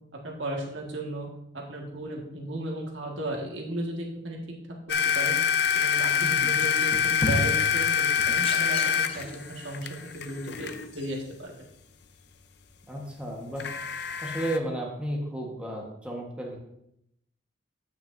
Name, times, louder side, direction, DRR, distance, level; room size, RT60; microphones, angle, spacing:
voice 1, 0.2-1.3 1.5-4.4 5.1-9.9 10.1-11.5, right 1 dB, 80° right, -1 dB, 1.8 m, -35 dB
sound 1, 4.9-10.9 13.6-14.6, left 7 dB, 55° left, 0.6 m, -26 dB
voice 2, 6.2-6.6 12.9-13.7 14.2-16.6, right 1 dB, 5° right, -2 dB, 1.3 m, -33 dB
sound 2, 6.6-7.6 8.2-9.5 10.5-10.6, left 2 dB, 30° left, 0.9 m, -32 dB
15.0 x 6.1 x 2.7 m, 0.79 s
head